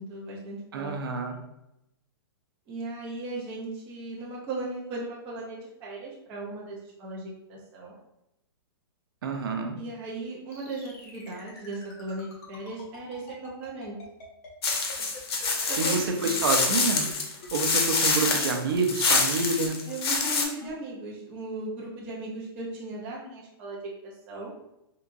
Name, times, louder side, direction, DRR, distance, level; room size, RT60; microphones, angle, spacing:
voice 1, 0.0-1.2 2.7-8.0 9.8-14.0 15.7-16.3 19.9-23.8 24.0-24.5, right 2 dB, 15° right, -4 dB, 0.3 m, -37 dB
voice 2, 0.7-1.4 9.2-9.8 15.8-17.1 17.5-19.8, right 4 dB, 65° right, 4 dB, 0.5 m, -28 dB
sound 1, 10.5-15.7 16.0-16.1 16.3-16.4 16.7-16.8 17.1-17.2 17.4-17.5 17.8-17.9 18.2-18.3 18.7-18.8 19.1-19.2 19.6-19.7 20.1-20.2 20.6-20.7, left 3 dB, 35° left, 0.9 m, -46 dB
sound 2, 14.6-20.4, left 4 dB, 80° left, 0.8 m, -26 dB
3.6 x 2.8 x 2.5 m, 0.86 s
hypercardioid pair, 175°, 13 cm